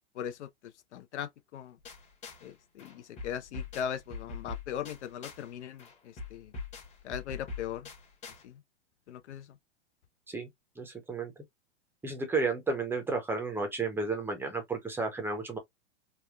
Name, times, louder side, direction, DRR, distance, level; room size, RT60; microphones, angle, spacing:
voice 1, 0.1-0.5 0.9-1.8 2.4-6.5 7.0-7.9 8.4-8.6 9.1-9.6, left 9 dB, 80° left, 0.6 m, -39 dB
sound 1, 1.8-2.5 2.8-5.5 5.8-8.4, left 4 dB, 20° left, 0.9 m, -43 dB
voice 2, 10.8-11.3 12.0-15.6, right 3 dB, 5° right, 0.5 m, -32 dB
3.3 x 2.2 x 2.2 m
hypercardioid pair, 130°, 34 cm